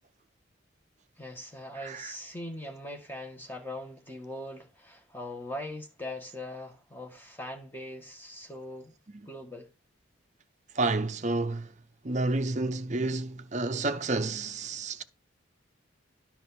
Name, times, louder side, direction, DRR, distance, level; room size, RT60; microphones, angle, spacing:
voice 1, 1.2-8.9 9.2-9.7, left 1 dB, 10° left, 1.6 m, -41 dB
voice 2, 1.8-2.1 10.7-11.7 12.0-15.0, right 2 dB, 35° right, 0.7 m, -30 dB
10.5 x 5.9 x 4.3 m
head